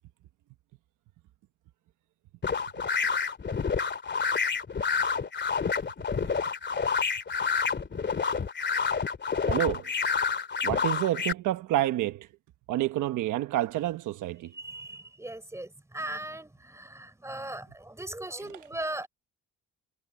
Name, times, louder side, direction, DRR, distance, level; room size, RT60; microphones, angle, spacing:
sound 1, 2.4-11.3, left 5 dB, 35° left, 2.7 m, -28 dB
voice 1, 9.5-9.9 10.6-12.3 12.7-14.5, right 14 dB, 90° right, 1.3 m, -28 dB
voice 2, 14.5-19.1, right 1 dB, 10° right, 4.1 m, -38 dB
cardioid pair, 90°, 30 cm